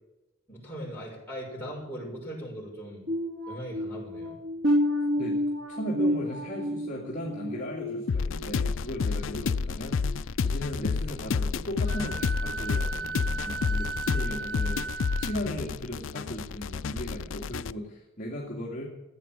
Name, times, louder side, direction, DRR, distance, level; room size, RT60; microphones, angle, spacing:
voice 1, 0.5-3.1 3.5-4.4, equal, 10° left, -4 dB, 6.3 m, -39 dB
sound 1, 3.1-8.7 9.2-9.4 10.0-10.1, equal, 80° right, 2.7 m, -30 dB
voice 2, 5.7-18.9, equal, 40° left, -3 dB, 2.4 m, -37 dB
sound 2, 8.1-17.7, left 5 dB, 75° left, 0.4 m, -30 dB
Wind instrument woodwind instrument, 11.9-15.4, right 4 dB, 60° right, 1.5 m, -36 dB
16.0 x 8.7 x 8.9 m, 0.95 s
head